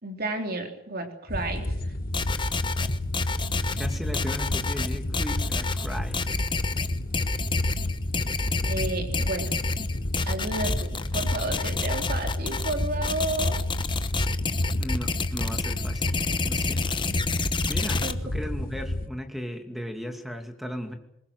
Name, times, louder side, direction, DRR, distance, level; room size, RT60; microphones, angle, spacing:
voice 1, 0.0-1.7 8.7-9.9 10.3-13.6 18.0-18.2, right 2 dB, 50° right, 4 dB, 3.5 m, -32 dB
sound 1, 1.3-19.1, left 1 dB, 45° left, 1.4 m, -30 dB
sound 2, 2.1-18.1, left 4 dB, 25° left, 1.0 m, -30 dB
voice 2, 3.8-6.4 14.8-17.0 17.7-20.9, equal, ahead, 5 dB, 2.4 m, -36 dB
22.5 x 20.5 x 7.9 m, 0.78 s
head